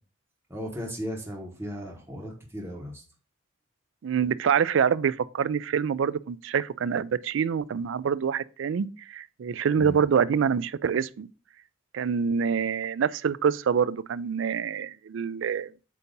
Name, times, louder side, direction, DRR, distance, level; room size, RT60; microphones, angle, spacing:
voice 1, 0.5-3.0 4.2-4.3 9.8-10.0, equal, 10° right, 1.3 m, -36 dB
voice 2, 4.0-11.3 11.9-15.7, right 7 dB, 75° right, 0.3 m, -26 dB
8.1 x 2.8 x 5.2 m
head